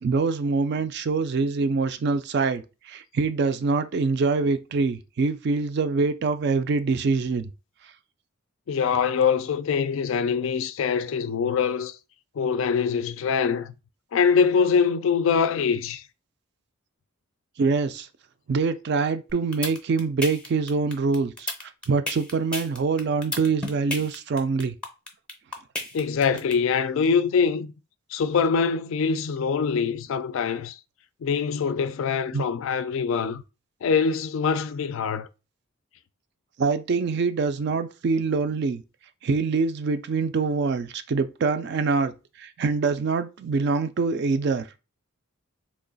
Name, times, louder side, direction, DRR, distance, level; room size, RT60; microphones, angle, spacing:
voice 1, 0.0-7.5 17.6-18.1 18.5-24.8 32.3-32.5 36.6-38.8 39.2-42.1 42.4-44.6, right 4 dB, 50° right, 0.3 m, -25 dB
voice 2, 8.7-12.0 12.4-13.7 14.1-16.0 25.9-27.7 28.1-30.8 31.2-33.4 33.8-35.3, left 6 dB, 65° left, 0.3 m, -24 dB
sound 1, 19.3-26.5, left 2 dB, 5° left, 0.5 m, -31 dB
3.0 x 2.4 x 3.9 m
head